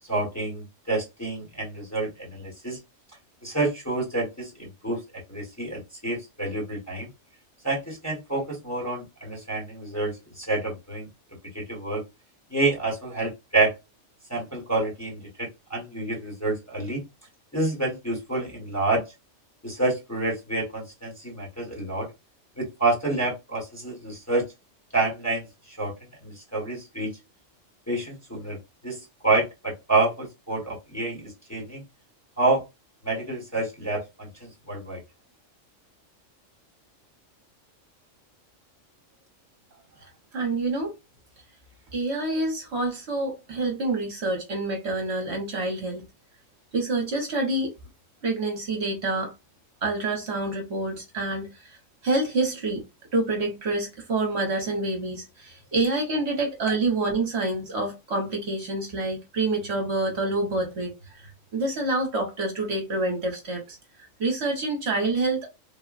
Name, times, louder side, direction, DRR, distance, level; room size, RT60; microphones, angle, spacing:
voice 1, 0.1-2.8 3.4-5.0 5.3-7.1 7.6-11.1 11.5-12.0 12.5-13.7 14.3-17.0 17.5-19.0 19.6-22.1 22.6-24.5 24.9-25.9 26.2-27.1 27.9-28.6 28.8-31.8 32.4-32.6 33.0-35.0, right 2 dB, 15° left, 1.0 m, -28 dB
voice 2, 40.3-40.9 41.9-46.0 46.7-47.7 48.2-49.3 49.8-51.8 52.0-52.8 53.1-63.8 64.2-65.5, right 2 dB, 60° right, 1.1 m, -27 dB
3.5 x 2.1 x 2.3 m
omnidirectional pair, 1.3 m